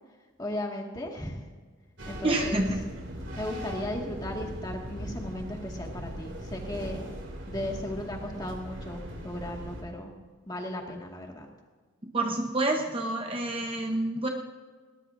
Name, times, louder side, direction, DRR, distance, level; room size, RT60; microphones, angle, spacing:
voice 1, 0.4-1.4 2.1-2.7 3.4-7.0 7.5-10.1 10.5-11.5, left 1 dB, 20° left, 0 dB, 1.9 m, -36 dB
sound 1, 2.0-9.8, equal, 60° right, 2.7 m, -39 dB
voice 2, 2.2-2.9 12.0-14.3, right 2 dB, 25° right, 2 dB, 1.0 m, -28 dB
20.0 x 19.0 x 2.7 m, 1.5 s
head